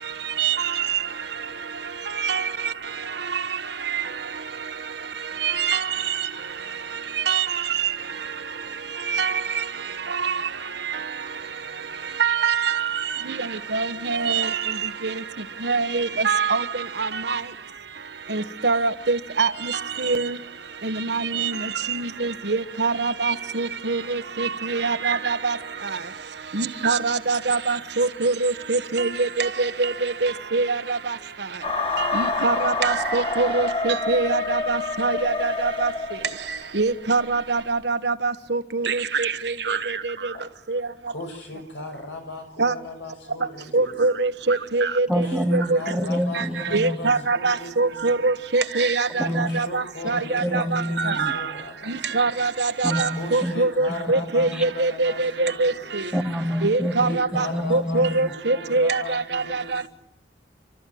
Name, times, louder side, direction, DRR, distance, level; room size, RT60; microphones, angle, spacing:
voice 1, 5.4-5.8 7.3-7.5 9.1-9.3 12.2-12.9 13.7-14.5 15.6-16.6 17.0-17.4 18.3-19.5 20.0-20.3 20.8-21.5 21.9-25.6 26.6-31.0 32.1-35.9 36.8-39.8 40.7-40.8 42.6-42.7 43.7-45.1 45.5-45.8 46.7-51.3 51.9-56.0 56.6-57.5 57.7-59.4 59.7-59.8, right 4 dB, 65° right, 1.2 m, -23 dB
sound 1, 31.6-36.6, left 3 dB, 35° left, 2.8 m, -27 dB
voice 2, 41.1-43.9 45.1-48.2 49.1-52.4 53.1-55.9 57.0-59.9, left 2 dB, 85° left, 6.7 m, -37 dB
voice 3, 45.1-47.3 49.2-49.6 50.1-51.4 52.8-53.5 54.5-54.6 56.1-58.3, equal, 5° right, 1.3 m, -27 dB
29.5 x 13.5 x 9.4 m
head